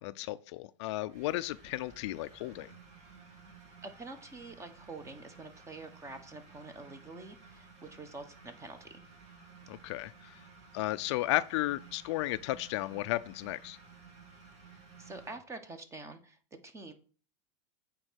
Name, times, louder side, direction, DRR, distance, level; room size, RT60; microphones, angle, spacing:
voice 1, 0.0-2.7 9.7-10.1 10.7-13.8, left 17 dB, 65° left, 0.4 m, -34 dB
sound 1, 1.1-15.4, right 5 dB, 45° right, 2.8 m, -55 dB
voice 2, 3.8-8.9 14.7-16.9, right 3 dB, 20° right, 1.3 m, -47 dB
8.8 x 3.9 x 6.4 m
hypercardioid pair, 115°, 16 cm